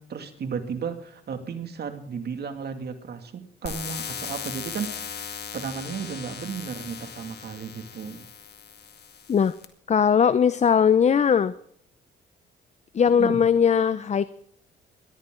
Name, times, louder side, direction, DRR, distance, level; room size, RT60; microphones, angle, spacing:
voice 1, 0.0-8.2 13.1-13.4, right 6 dB, 55° right, 7 dB, 2.4 m, -34 dB
sound 1, 3.7-9.7, left 7 dB, 60° left, 2.1 m, -38 dB
voice 2, 9.9-11.5 12.9-14.3, left 7 dB, 35° left, 15 dB, 0.6 m, -19 dB
21.0 x 14.0 x 3.8 m, 0.67 s
cardioid pair, 90°, 20 cm